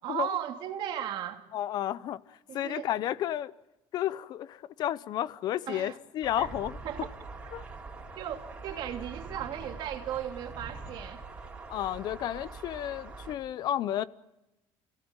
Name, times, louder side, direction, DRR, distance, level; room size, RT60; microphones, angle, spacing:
voice 1, 0.0-1.4 2.5-2.9 5.7-6.0 6.4-6.5 6.8-7.1 8.2-11.2, right 10 dB, 50° right, 2.8 m, -36 dB
voice 2, 1.5-2.2 2.5-3.5 3.9-6.8 7.5-7.6 11.7-14.0, left 12 dB, 45° left, 0.8 m, -32 dB
sound 1, 6.2-13.3, right 3 dB, 15° right, 4.4 m, -44 dB
29.5 x 17.5 x 9.0 m
cardioid pair, 175°, 10 cm